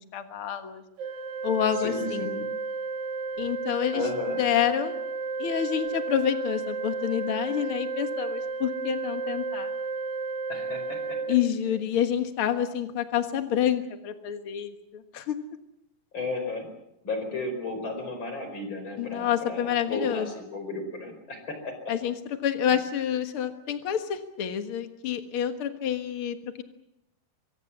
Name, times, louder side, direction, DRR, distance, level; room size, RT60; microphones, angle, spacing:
voice 1, 0.1-0.8 1.4-2.3 3.4-4.1 4.4-5.0 5.4-9.7 11.3-15.4 19.0-20.3 21.9-22.1 22.4-26.6, left 9 dB, 85° left, 7 dB, 1.2 m, -28 dB
Organ, 1.0-12.0, right 4 dB, 80° right, 1.7 m, -33 dB
voice 2, 1.8-2.5 3.9-4.4 10.5-11.2 16.1-16.7 17.0-21.7, left 3 dB, 30° left, 6 dB, 5.3 m, -34 dB
24.0 x 24.0 x 7.4 m, 0.82 s
omnidirectional pair, 4.9 m